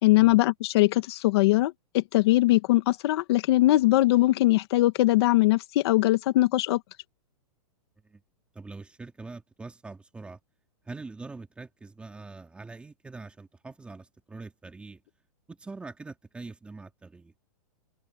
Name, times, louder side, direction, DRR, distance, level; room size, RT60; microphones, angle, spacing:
voice 1, 0.0-6.8, left 17 dB, 40° left, 1.5 m, -21 dB
voice 2, 8.5-10.4 10.9-15.0 15.5-17.3, right 3 dB, 5° right, 2.5 m, -43 dB
hypercardioid pair, 165°, 20 cm